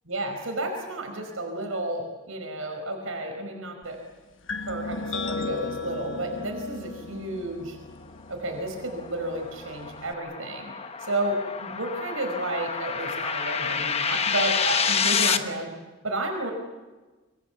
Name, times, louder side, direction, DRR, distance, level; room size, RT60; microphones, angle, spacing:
voice 1, 0.1-4.0 4.7-7.8 8.3-10.7 11.1-15.7 16.0-16.5, right 1 dB, 85° right, 3 dB, 5.1 m, -31 dB
sound 1, 4.5-10.1, left 4 dB, 65° left, 1.1 m, -36 dB
sound 2, 8.5-15.4, left 6 dB, 30° left, 1.0 m, -28 dB
26.5 x 24.0 x 7.2 m, 1.2 s
head